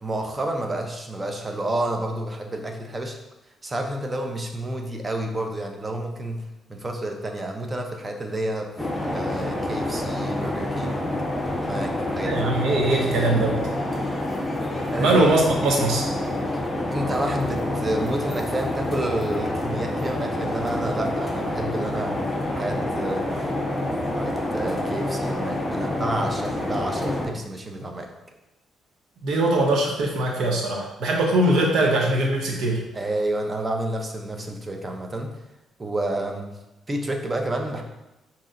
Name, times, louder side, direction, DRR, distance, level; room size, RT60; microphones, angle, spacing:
voice 1, 0.0-3.2 3.6-8.7 9.1-11.1 11.7-12.4 14.9-15.2 16.9-23.3 24.2-28.1 32.9-35.4 35.8-36.5 36.9-37.8, right 1 dB, 25° right, 3 dB, 0.6 m, -30 dB
sound 1, 8.8-27.2, left 1 dB, 10° left, 0.8 m, -27 dB
voice 2, 12.2-13.6 15.0-16.0 29.2-32.8, right 2 dB, 75° right, 0 dB, 0.9 m, -21 dB
5.4 x 2.8 x 2.5 m, 0.96 s
cardioid pair, 90°, 0 cm